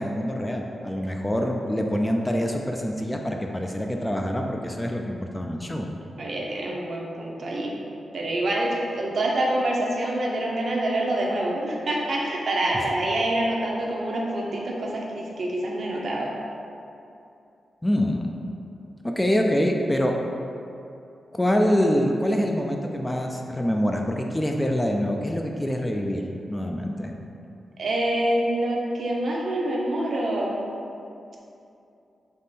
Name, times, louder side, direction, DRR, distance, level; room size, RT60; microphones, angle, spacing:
voice 1, 0.0-5.9 17.8-18.3 19.0-20.1 21.3-27.1, equal, 10° left, 1 dB, 0.3 m, -25 dB
voice 2, 6.2-7.7 8.1-16.3 27.8-30.6, right 1 dB, 60° right, -2 dB, 0.7 m, -26 dB
3.5 x 3.2 x 4.1 m, 2.7 s
cardioid pair, 95°, 0 cm